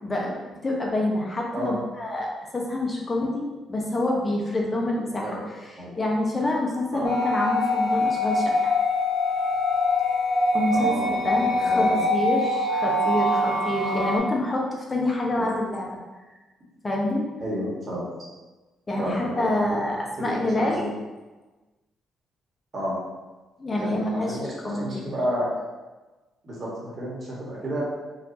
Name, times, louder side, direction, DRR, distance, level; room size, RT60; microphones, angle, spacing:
voice 1, 0.0-5.3 6.0-8.7 10.5-15.9 16.8-17.2 18.9-20.8 23.6-24.4 24.6-25.0, left 1 dB, 25° left, -2 dB, 0.9 m, -27 dB
sound 1, 7.0-14.2, left 2 dB, 60° left, 1.0 m, -24 dB
voice 2, 10.7-12.1 15.3-15.5 17.4-18.1 19.0-19.9 20.2-20.9 22.7-23.0 23.7-25.5 26.4-27.8, equal, 45° right, -5 dB, 1.5 m, -31 dB
4.1 x 2.6 x 2.8 m, 1.2 s
cardioid pair, 90°, 0 cm